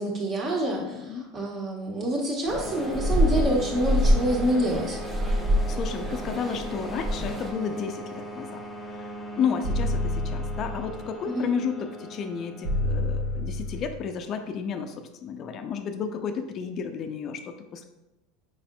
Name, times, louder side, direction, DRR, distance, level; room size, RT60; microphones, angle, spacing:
voice 1, 0.0-5.0 11.3-11.5, right 1 dB, 40° right, -3 dB, 1.2 m, -27 dB
voice 2, 0.7-1.3 5.7-8.6 8.9-9.0 9.4-14.9 15.2-17.9, left 6 dB, 45° left, 7 dB, 0.4 m, -32 dB
sound 1, 2.5-13.9, equal, 15° left, 0.7 m, -39 dB
sound 2, 2.5-7.5, equal, 20° right, 0.7 m, -26 dB
sound 3, 9.6-11.1 12.6-14.1, left 2 dB, 70° right, 0.7 m, -28 dB
4.8 x 4.2 x 2.2 m, 0.98 s
hypercardioid pair, 100°, 0 cm